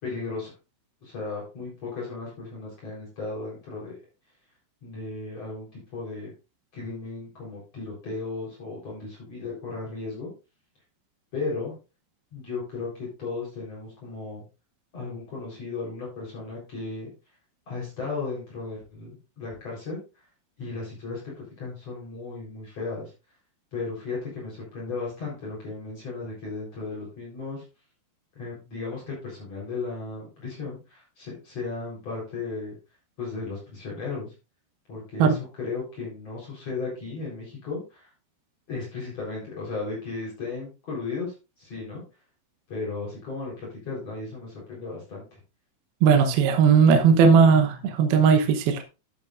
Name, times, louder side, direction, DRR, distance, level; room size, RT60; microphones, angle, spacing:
voice 1, 0.0-0.5 1.0-4.0 4.8-5.7 5.9-6.3 6.7-10.3 11.3-11.7 12.3-14.4 14.9-17.1 17.7-20.0 20.6-23.1 23.7-27.6 28.3-32.7 33.2-34.3 34.9-38.1 38.7-42.0 42.7-45.4, left 3 dB, 35° left, 4.9 m, -35 dB
voice 2, 46.0-48.8, right 6 dB, 70° right, 2.6 m, -18 dB
13.0 x 8.3 x 2.5 m
omnidirectional pair, 5.1 m